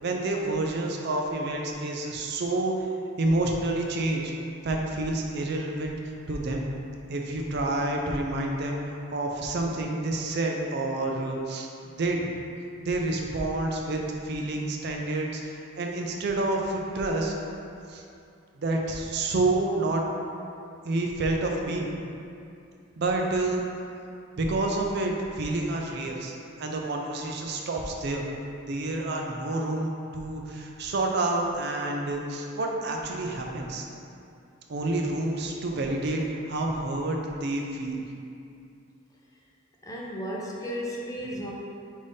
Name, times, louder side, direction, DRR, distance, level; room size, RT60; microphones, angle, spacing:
voice 1, 0.0-2.7 3.2-4.3 4.6-6.0 6.3-6.7 7.1-11.7 12.0-12.3 12.8-17.4 17.9-18.0 18.6-20.0 20.8-21.9 23.0-23.7 24.4-28.3 28.7-33.8 34.7-38.0, right 2 dB, 55° right, 1 dB, 0.4 m, -28 dB
voice 2, 39.8-41.5, equal, 15° left, -3 dB, 0.4 m, -34 dB
5.2 x 2.7 x 3.4 m, 2.6 s
head